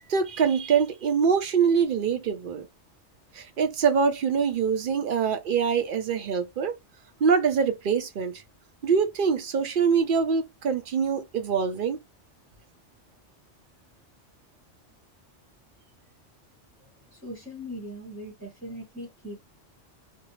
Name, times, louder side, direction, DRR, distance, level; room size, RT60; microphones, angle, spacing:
voice 1, 0.1-2.7 3.3-6.7 7.2-8.4 8.8-12.0, right 6 dB, 55° right, 0.6 m, -24 dB
voice 2, 17.1-19.4, equal, 15° right, 0.9 m, -39 dB
2.6 x 2.1 x 3.0 m
omnidirectional pair, 1.2 m